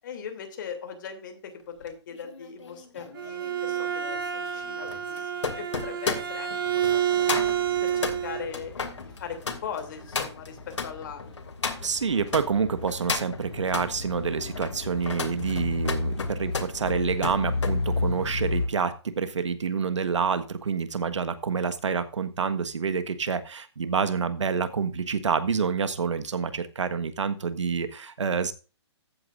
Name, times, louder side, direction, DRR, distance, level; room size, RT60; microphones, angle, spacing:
voice 1, 0.0-4.2 4.5-7.5 7.8-11.3, left 7 dB, 40° left, 5 dB, 3.0 m, -39 dB
sound 1, 1.8-12.5 12.8-13.9 14.4-17.8 18.1-18.4, left 5 dB, 90° left, 2.6 m, -34 dB
Bowed string instrument, 3.0-8.5, right 9 dB, 50° right, 1.3 m, -28 dB
sound 2, 7.4-18.7, left 3 dB, 70° left, 5.2 m, -34 dB
voice 2, 11.8-28.5, right 5 dB, 90° right, 10 dB, 1.5 m, -28 dB
15.0 x 8.8 x 2.6 m, 0.34 s
hypercardioid pair, 160°, 15 cm